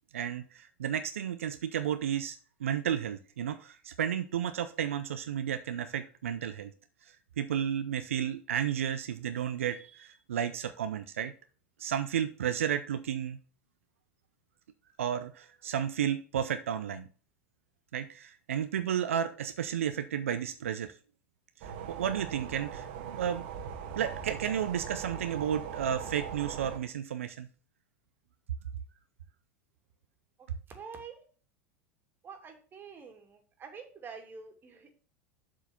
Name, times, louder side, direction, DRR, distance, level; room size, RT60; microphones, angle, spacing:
voice 1, 0.1-6.7 7.0-11.3 11.8-13.4 15.0-17.1 17.9-21.0 21.6-23.5 24.0-27.5, right 9 dB, 80° right, 11 dB, 0.5 m, -32 dB
sound 1, 21.6-26.8, right 7 dB, 60° right, 1.5 m, -40 dB
voice 2, 30.7-31.3 32.2-34.9, right 5 dB, 30° right, 4 dB, 2.5 m, -47 dB
7.6 x 4.6 x 6.9 m, 0.40 s
hypercardioid pair, 85°, 7 cm